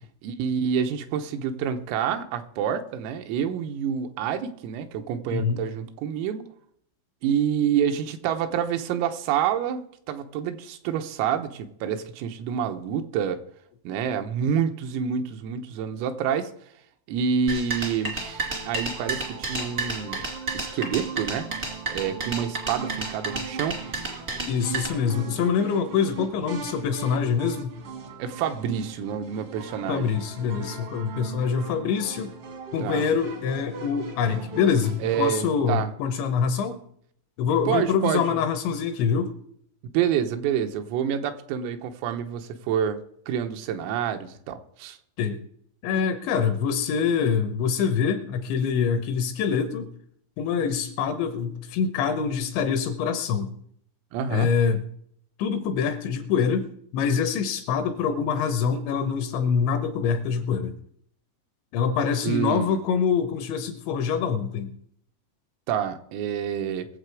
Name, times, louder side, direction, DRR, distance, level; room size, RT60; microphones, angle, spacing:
voice 1, 0.2-6.4 7.2-13.4 13.9-16.5 17.1-20.3 20.5-21.5 21.9-23.8 28.2-30.1 32.8-33.0 35.0-35.9 37.7-38.2 39.9-45.0 54.1-54.5 62.2-62.8 65.7-66.9, right 8 dB, 90° right, 7 dB, 3.7 m, -28 dB
sound 1, 17.5-24.9, right 3 dB, 50° right, 0.9 m, -31 dB
sound 2, 18.1-35.2, right 5 dB, 70° right, 1.4 m, -39 dB
voice 2, 24.5-27.7 29.9-32.3 32.7-36.8 37.4-39.4 45.2-45.4 45.8-49.9 50.4-53.5 54.3-54.8 55.4-60.8 61.7-64.7, left 6 dB, 80° left, 8 dB, 2.9 m, -25 dB
22.0 x 7.6 x 4.8 m, 0.67 s
omnidirectional pair, 5.9 m